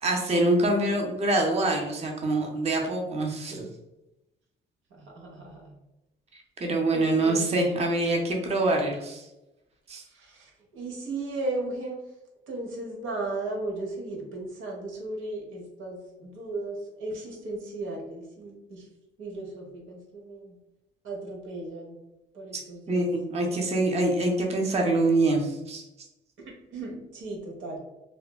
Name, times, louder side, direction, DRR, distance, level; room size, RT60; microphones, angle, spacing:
voice 1, 0.0-3.6 6.6-9.2 9.9-10.0 22.9-25.8, right 2 dB, 30° right, 1 dB, 0.5 m, -25 dB
voice 2, 4.9-5.7 6.9-7.5 10.0-12.0 12.5-18.9 19.2-20.6 21.0-22.0 22.3-23.1 23.5-23.6 26.4-27.8, right 2 dB, 85° right, -1 dB, 0.8 m, -36 dB
3.2 x 2.1 x 2.3 m, 0.94 s
cardioid pair, 90°, 20 cm